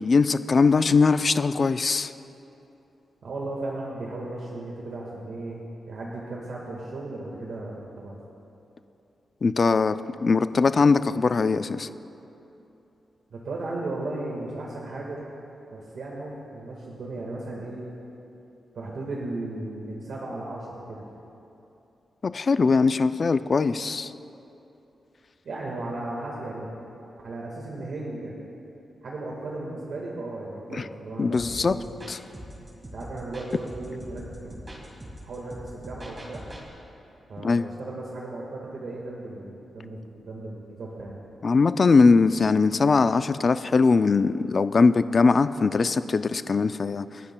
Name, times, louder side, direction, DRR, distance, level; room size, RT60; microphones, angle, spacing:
voice 1, 0.0-2.1 9.4-11.9 22.2-24.1 30.7-30.9 31.2-31.8 32.1-32.2 37.4-37.7 41.4-47.2, left 4 dB, 35° left, 12 dB, 0.3 m, -21 dB
voice 2, 3.2-5.6 5.9-8.2 13.3-15.3 15.7-17.8 18.7-21.0 25.4-26.7 27.2-28.3 29.0-31.9 32.9-34.7 35.2-36.4 37.3-41.2, right 2 dB, 65° right, -3 dB, 1.6 m, -35 dB
sound 1, 31.3-36.7, equal, 20° right, 2.0 m, -42 dB
29.0 x 9.8 x 2.2 m, 2.9 s
wide cardioid pair, 150°, 0 cm